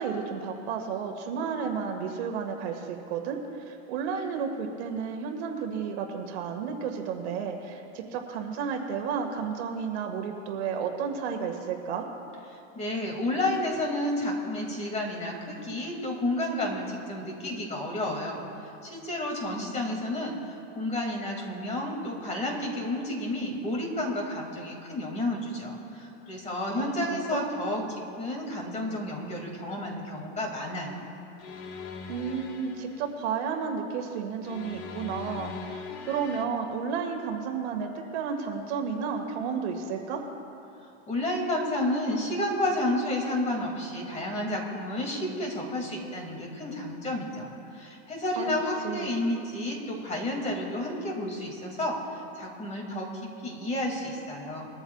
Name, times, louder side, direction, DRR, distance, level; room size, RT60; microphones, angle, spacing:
voice 1, 0.0-3.4 3.7-12.1 26.7-27.6 32.1-35.8 36.1-40.2 48.4-48.5 48.8-49.1, right 6 dB, 65° right, 3 dB, 1.9 m, -32 dB
voice 2, 12.7-18.4 18.8-27.8 28.2-31.1 41.1-47.5 47.7-54.7, left 1 dB, 20° left, 0 dB, 2.4 m, -31 dB
sound 1, 31.4-33.1 34.4-36.5, left 5 dB, 45° left, 1.5 m, -40 dB
22.5 x 13.5 x 2.4 m, 2.7 s
supercardioid pair, 145°, 36 cm